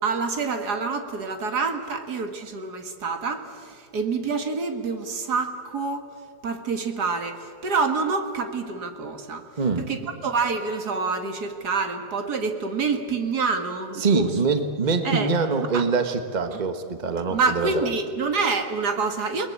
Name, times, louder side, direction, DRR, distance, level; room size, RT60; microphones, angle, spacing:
voice 1, 0.0-6.1 6.4-9.4 9.8-14.3 15.0-15.3 15.7-15.8 17.3-19.5, right 4 dB, 75° right, 6 dB, 2.3 m, -27 dB
voice 2, 9.6-9.9 14.0-17.7, right 4 dB, 30° right, 8 dB, 1.4 m, -24 dB
29.5 x 20.0 x 8.4 m, 2.2 s
omnidirectional pair, 1.7 m